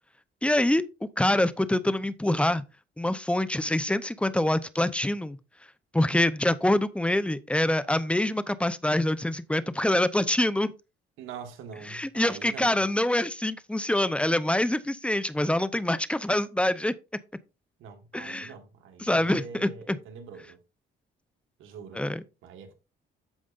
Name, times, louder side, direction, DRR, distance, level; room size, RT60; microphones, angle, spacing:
voice 1, 0.4-0.8 1.2-2.6 3.0-5.4 5.9-10.7 11.9-16.9 18.1-18.5 19.0-20.0 21.9-22.2, left 1 dB, 5° left, 0.7 m, -25 dB
voice 2, 11.2-12.8 17.8-20.6 21.6-22.0 22.4-22.7, right 6 dB, 90° right, 1.7 m, -43 dB
14.0 x 5.1 x 2.5 m
cardioid pair, 90°, 20 cm